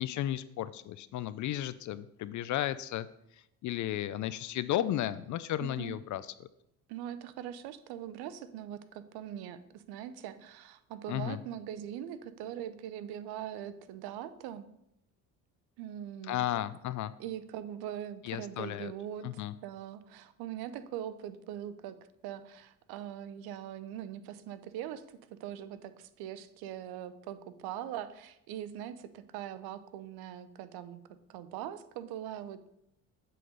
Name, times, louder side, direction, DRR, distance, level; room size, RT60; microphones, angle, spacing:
voice 1, 0.0-3.1 3.6-6.2 11.1-11.4 16.3-17.1 18.2-18.9 19.2-19.5, left 13 dB, 50° left, 15 dB, 0.4 m, -34 dB
voice 2, 5.6-5.9 6.9-14.7 15.8-16.5 17.2-19.2 19.6-21.9 22.2-31.0 31.3-32.7, right 10 dB, 75° right, 13 dB, 0.8 m, -41 dB
7.7 x 3.9 x 6.5 m, 0.80 s
supercardioid pair, 90°, 38 cm